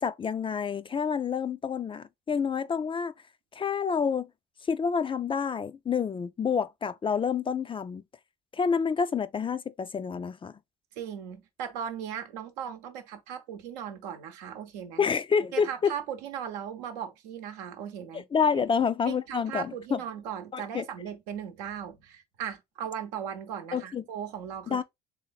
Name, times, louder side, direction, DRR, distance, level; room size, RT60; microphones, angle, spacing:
voice 1, 0.0-3.1 3.5-4.3 4.7-8.0 8.5-10.6 15.0-15.9 18.1-20.0 20.5-20.9 23.7-24.0 24.7-24.8, left 6 dB, 25° left, 0.3 m, -28 dB
voice 2, 10.9-15.0 15.5-18.2 18.6-18.7 19.1-24.8, right 9 dB, 85° right, 0.7 m, -38 dB
3.3 x 2.7 x 3.9 m
hypercardioid pair, 65°, 21 cm